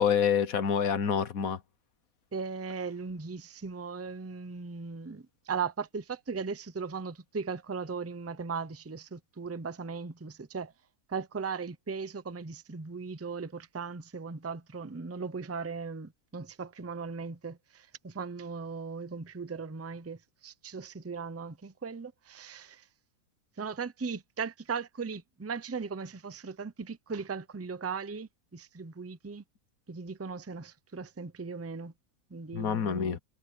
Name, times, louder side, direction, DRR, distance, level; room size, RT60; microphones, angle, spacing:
voice 1, 0.0-1.6 32.5-33.2, left 7 dB, 65° left, 1.5 m, -27 dB
voice 2, 2.3-10.7 11.1-22.9 23.6-29.4 29.9-31.9 32.3-33.2, right 5 dB, 15° right, 0.4 m, -38 dB
omnidirectional pair, 1.6 m